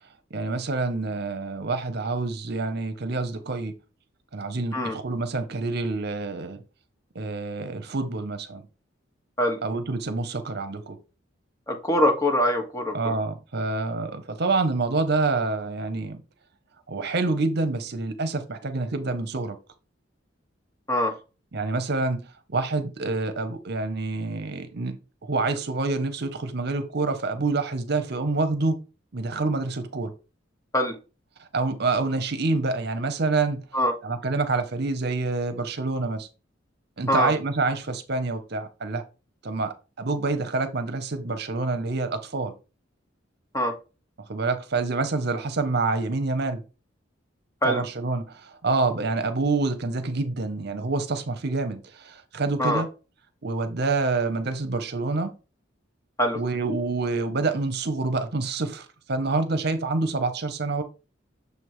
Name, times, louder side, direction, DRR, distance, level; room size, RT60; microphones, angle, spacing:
voice 1, 0.3-3.7 4.3-6.6 7.1-8.6 9.6-11.0 12.9-16.2 16.9-19.6 21.5-22.2 22.5-25.0 25.2-28.8 29.1-30.1 31.4-33.6 34.0-36.3 37.0-39.0 39.4-42.5 44.3-46.6 47.6-52.9 53.4-55.3 56.3-60.8, right 3 dB, 55° right, 0.8 m, -27 dB
voice 2, 11.7-13.1 20.9-21.1 30.7-31.0 33.7-33.9 37.1-37.3 43.5-43.7 47.6-47.8 52.6-52.8 56.2-56.4, equal, 15° left, 1.1 m, -23 dB
6.7 x 3.5 x 4.7 m
head